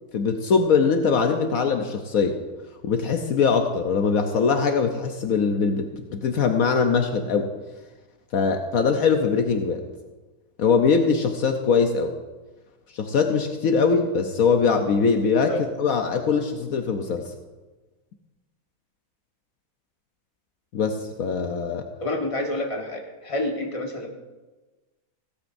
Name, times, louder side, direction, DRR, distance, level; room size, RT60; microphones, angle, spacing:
voice 1, 0.1-2.4 2.8-7.5 8.3-9.8 10.6-12.1 12.9-17.2 20.7-21.9, left 5 dB, 70° left, 5 dB, 1.2 m, -22 dB
voice 2, 22.0-24.1, left 1 dB, 20° left, 0 dB, 1.5 m, -28 dB
16.0 x 13.5 x 2.6 m, 1.2 s
omnidirectional pair, 1.6 m